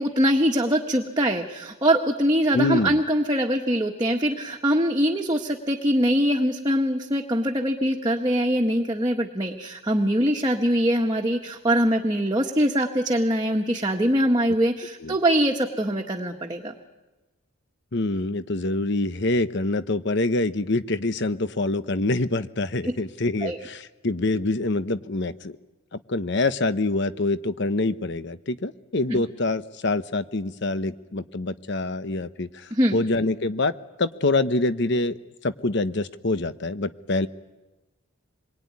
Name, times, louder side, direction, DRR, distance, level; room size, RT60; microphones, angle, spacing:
voice 1, 0.0-16.7 22.8-22.9 23.4-23.6 29.1-29.2 32.7-33.0, equal, 20° right, 1 dB, 1.5 m, -23 dB
voice 2, 2.5-3.0 15.0-15.2 17.9-25.6 26.1-32.5 32.9-33.7 34.0-35.2 35.4-37.3, left 2 dB, 55° left, 12 dB, 1.0 m, -25 dB
27.5 x 22.5 x 9.7 m, 1.1 s
head